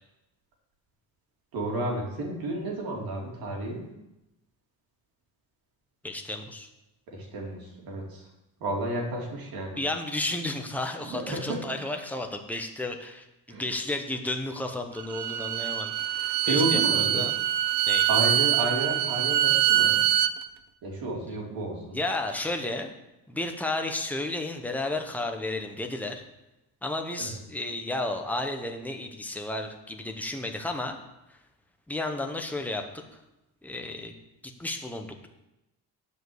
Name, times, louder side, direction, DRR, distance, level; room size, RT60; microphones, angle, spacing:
voice 1, 1.5-3.9 7.1-8.3 8.6-9.8 11.0-11.6 13.5-13.6 16.4-17.2 18.1-20.0 20.8-22.0 27.2-27.4, right 2 dB, 65° right, -1 dB, 2.9 m, -31 dB
voice 2, 6.0-6.7 9.8-17.3 17.9-18.1 21.9-22.9 23.3-26.2 26.8-31.0 31.3-31.4 31.9-33.0 33.6-34.1 34.6-35.3, left 2 dB, 5° left, 3 dB, 0.8 m, -32 dB
Bowed string instrument, 15.0-20.3, right 12 dB, 85° right, 0.7 m, -24 dB
10.5 x 5.2 x 7.8 m, 0.94 s
cardioid pair, 175°, 39 cm